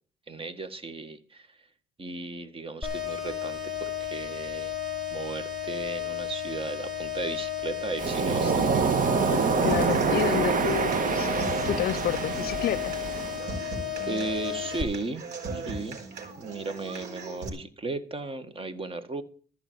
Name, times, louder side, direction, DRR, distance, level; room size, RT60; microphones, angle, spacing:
voice 1, 0.3-1.5 2.0-4.8 5.1-8.7 14.1-15.2 15.5-16.0 16.4-19.2, right 3 dB, 30° right, 1.7 m, -35 dB
sound 1, 2.8-14.8, left 9 dB, 5° right, 3.5 m, -34 dB
Waves surf, 8.0-13.4, right 6 dB, 50° right, 1.5 m, -26 dB
voice 2, 9.3-12.9, left 11 dB, 60° left, 0.6 m, -30 dB
Human voice / Acoustic guitar, 9.5-17.5, right 3 dB, 75° right, 4.5 m, -39 dB
14.0 x 6.0 x 9.2 m
cardioid pair, 90°, 18 cm